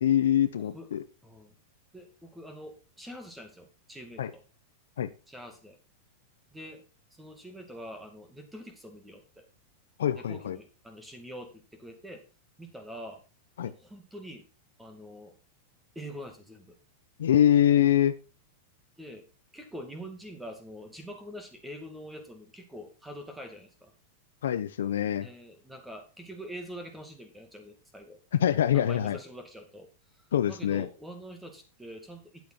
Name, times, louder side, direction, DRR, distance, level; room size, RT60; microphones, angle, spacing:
voice 1, 0.0-1.0 4.2-4.3 5.0-5.1 10.0-10.6 13.6-13.7 17.2-18.1 24.4-25.3 28.4-29.2 30.3-30.9, left 10 dB, 90° left, 11 dB, 0.8 m, -24 dB
voice 2, 1.2-1.5 1.9-4.4 5.3-5.8 6.5-6.8 7.1-9.5 10.1-12.2 12.6-13.2 13.6-14.4 14.8-15.3 16.0-16.8 19.0-19.3 19.5-23.9 25.2-28.2 28.7-29.9 30.2-32.5, equal, 5° right, 6 dB, 2.2 m, -45 dB
9.4 x 7.8 x 4.5 m, 0.32 s
supercardioid pair, 140°, 0 cm